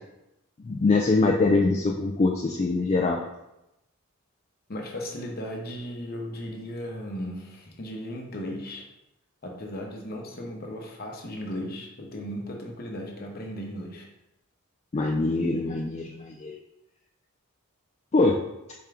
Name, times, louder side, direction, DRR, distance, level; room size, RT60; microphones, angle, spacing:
voice 1, 0.6-3.2 14.9-16.5 18.1-18.4, left 3 dB, 30° left, 0 dB, 0.3 m, -23 dB
voice 2, 4.7-8.8 9.4-14.1, equal, 45° left, 0 dB, 0.8 m, -36 dB
4.3 x 3.6 x 3.4 m, 0.90 s
head